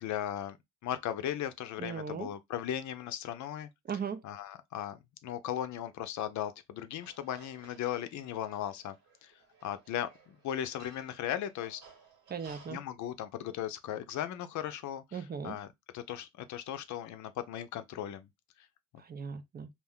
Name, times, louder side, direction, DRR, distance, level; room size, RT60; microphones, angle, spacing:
voice 1, 0.0-0.6 0.8-3.7 4.2-8.9 9.2-9.3 9.6-11.8 12.7-15.7 15.9-18.3 18.9-19.0, left 11 dB, 70° left, 0.5 m, -37 dB
voice 2, 1.8-2.3 3.9-4.2 12.3-12.8 15.1-15.6 19.0-19.7, right 6 dB, 35° right, 0.4 m, -38 dB
sound 1, 7.0-12.8, right 4 dB, 80° right, 1.4 m, -58 dB
2.5 x 2.1 x 3.5 m
cardioid pair, 90°, 30 cm